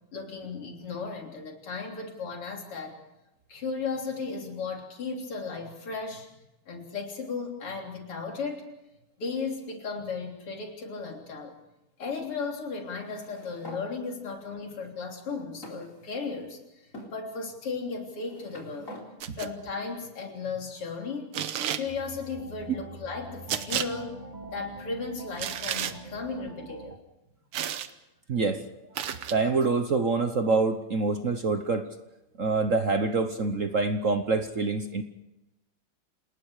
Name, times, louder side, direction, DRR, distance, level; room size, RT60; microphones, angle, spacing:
voice 1, 0.1-3.0 3.5-6.3 6.7-8.7 9.2-11.6 12.0-18.9 19.4-21.3 21.7-24.2 24.5-26.9, left 4 dB, 90° left, 2 dB, 4.4 m, -35 dB
sound 1, 13.0-13.9 14.7-14.8 15.6-16.5 16.9-17.1 18.0-19.1, left 1 dB, 35° left, 4.3 m, -45 dB
sound 2, 19.2-19.5 21.3-21.9 23.5-23.9 25.4-25.9 27.5-27.9 29.0-29.4, right 9 dB, 90° right, 2.0 m, -31 dB
sound 3, 21.9-27.0, right 1 dB, 20° right, 1.6 m, -44 dB
voice 2, 28.3-28.7 29.0-31.9 32.4-35.0, right 3 dB, 45° right, 8 dB, 1.1 m, -26 dB
28.5 x 19.5 x 4.9 m, 0.97 s
omnidirectional pair, 2.4 m